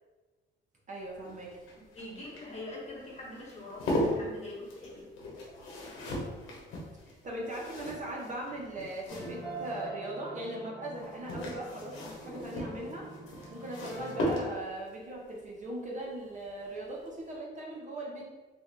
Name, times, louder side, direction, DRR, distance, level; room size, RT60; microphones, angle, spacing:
voice 1, 0.9-1.5 4.1-4.3 7.1-13.1 13.5-18.2, right 1 dB, 40° right, -2 dB, 0.8 m, -39 dB
sound 1, 1.0-9.8 10.9-14.9 16.5-16.8 17.1-17.2, left 1 dB, 90° left, 0.9 m, -37 dB
voice 2, 1.9-5.1 5.5-5.6, left 2 dB, 35° left, -4 dB, 1.3 m, -44 dB
sound 2, 9.1-14.2, right 1 dB, 5° right, 1.4 m, -44 dB
3.5 x 2.4 x 3.3 m, 1.3 s
cardioid pair, 90°, 20 cm